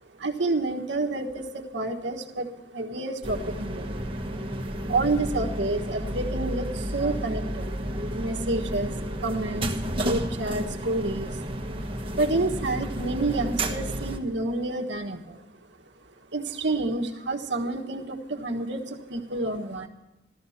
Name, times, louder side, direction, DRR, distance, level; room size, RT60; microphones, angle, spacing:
voice 1, 0.2-4.0 4.9-7.7 8.1-11.4 11.9-15.4 16.3-19.9, right 2 dB, 70° right, 3 dB, 1.4 m, -29 dB
sound 1, 3.2-14.2, right 1 dB, 30° right, 1.3 m, -31 dB
14.5 x 13.5 x 5.8 m, 0.94 s
head